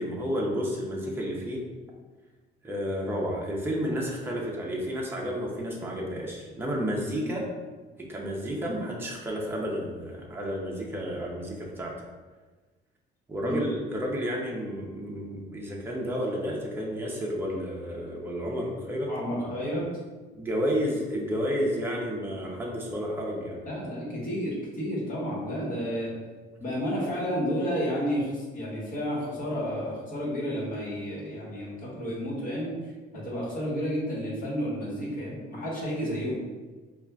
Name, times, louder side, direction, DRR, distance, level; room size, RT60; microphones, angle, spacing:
voice 1, 0.0-1.6 2.6-7.5 8.0-11.9 13.3-19.1 20.3-23.6, equal, 10° right, -3 dB, 0.6 m, -31 dB
voice 2, 19.1-19.8 23.6-26.1 26.6-32.7 33.1-36.4, equal, 45° left, -6 dB, 1.4 m, -31 dB
5.2 x 2.4 x 2.3 m, 1.3 s
cardioid pair, 145°, 19 cm